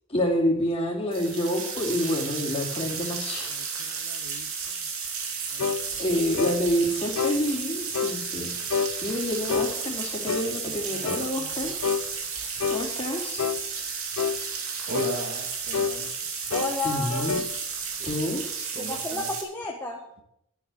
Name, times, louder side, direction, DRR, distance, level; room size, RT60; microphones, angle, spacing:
voice 1, 0.1-3.6 5.5-11.7 12.7-13.5 16.8-17.4 18.0-18.4, equal, 25° left, 2.9 m, -28 dB
sound 1, 1.1-19.4, right 6 dB, 70° right, 2.9 m, -33 dB
voice 2, 3.5-4.8 5.5-6.0 10.9-11.8, right 5 dB, 90° right, 0.5 m, -49 dB
sound 2, 5.6-5.8 6.4-6.6 7.2-7.4 7.9-8.2 8.7-9.0 9.5-9.7 10.3-10.5 11.0-11.3 11.8-12.1 12.6-12.9 13.4-13.6 14.2-14.4 14.9-15.2 15.7-16.0 16.5-16.8 17.1-17.5, left 6 dB, 80° left, 0.6 m, -27 dB
voice 3, 14.9-16.3 18.0-18.3 18.7-19.3, right 1 dB, 50° right, 2.4 m, -36 dB
voice 4, 16.5-17.3 18.8-20.0, left 3 dB, 10° left, 1.4 m, -32 dB
12.0 x 10.5 x 6.4 m
head